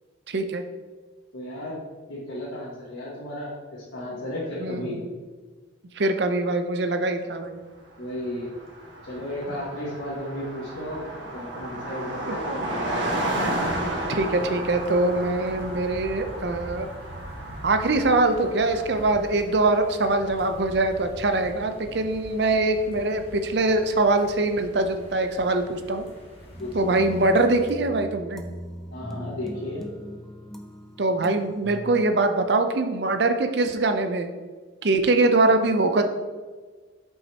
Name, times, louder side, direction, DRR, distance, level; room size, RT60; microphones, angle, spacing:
voice 1, 0.3-0.6 4.6-5.1 5.9-7.6 12.3-12.4 14.1-16.9 17.6-26.0 26.7-28.4 31.0-34.3 34.8-36.0, right 2 dB, 60° right, 7 dB, 0.6 m, -23 dB
voice 2, 1.3-1.8 2.1-5.0 8.0-8.5 9.1-11.0 11.3-13.0 26.6-27.1 28.9-29.8, left 1 dB, 75° left, -7 dB, 1.6 m, -34 dB
Car passing by, 8.0-8.1 8.3-19.4, right 1 dB, 75° right, 1.3 m, -32 dB
sound 1, 13.6-27.6, equal, 30° left, 1.7 m, -44 dB
sound 2, 26.5-32.1, equal, ahead, 0.4 m, -39 dB
7.4 x 5.6 x 2.9 m, 1.4 s
head